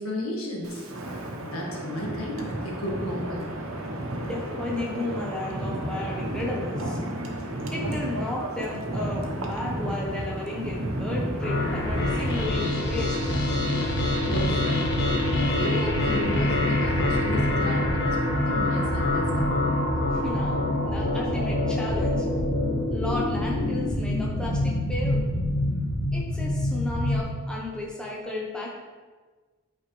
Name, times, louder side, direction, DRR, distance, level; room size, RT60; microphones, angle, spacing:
voice 1, 0.0-3.5 7.4-7.7 13.6-19.5, left 1 dB, 85° left, -2 dB, 1.7 m, -34 dB
Wind, 0.6-12.5, right 1 dB, 85° right, 1.1 m, -32 dB
voice 2, 4.2-7.0 7.7-13.2 13.8-13.9 20.1-22.3 22.9-25.2 26.1-28.7, left 2 dB, 5° left, -4 dB, 1.0 m, -34 dB
sound 1, 11.4-27.2, left 1 dB, 55° left, 1.4 m, -25 dB
8.9 x 5.2 x 3.3 m, 1.4 s
head